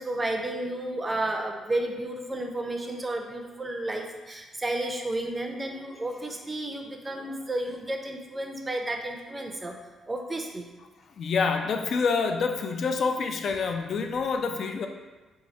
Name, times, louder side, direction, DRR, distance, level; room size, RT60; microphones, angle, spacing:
voice 1, 0.0-9.8 10.1-10.7, right 1 dB, 20° right, 3 dB, 0.4 m, -32 dB
voice 2, 11.2-14.9, left 5 dB, 60° left, 5 dB, 0.3 m, -27 dB
3.0 x 2.3 x 4.0 m, 1.2 s
cardioid pair, 90°, 0 cm